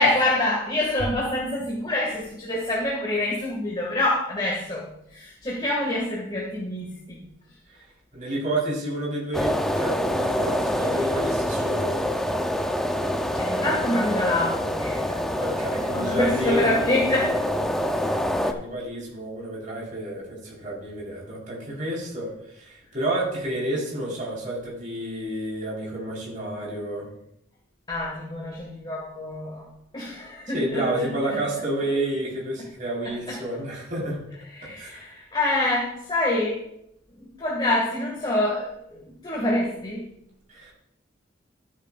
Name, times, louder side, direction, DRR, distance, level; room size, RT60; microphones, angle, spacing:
voice 1, 0.0-7.2 13.4-17.5 17.8-17.9 27.9-29.7 29.9-31.4 33.0-33.4 34.5-36.7 37.2-40.1, left 1 dB, 25° left, -4 dB, 2.0 m, -26 dB
voice 2, 8.1-12.0 15.4-16.7 17.7-27.1 30.5-34.2 34.8-35.1 40.5-40.7, right 1 dB, 40° right, -5 dB, 4.2 m, -30 dB
sound 1, 9.3-18.5, equal, ahead, 0.6 m, -26 dB
13.5 x 9.5 x 2.5 m, 0.76 s
head